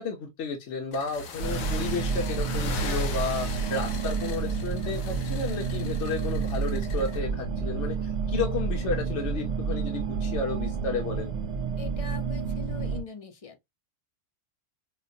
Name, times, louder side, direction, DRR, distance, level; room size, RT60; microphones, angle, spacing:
voice 1, 0.0-11.3, left 4 dB, 60° left, 1.0 m, -32 dB
sound 1, 0.9-7.2, left 4 dB, 80° left, 1.2 m, -39 dB
sound 2, 1.4-13.0, right 5 dB, 65° right, 0.9 m, -30 dB
Thump thud, 4.3-4.7 5.7-6.1 7.2-7.6 8.9-9.3, right 5 dB, 15° right, 0.7 m, -43 dB
voice 2, 11.8-13.7, left 5 dB, 40° left, 0.5 m, -42 dB
4.9 x 2.0 x 2.6 m
omnidirectional pair, 1.4 m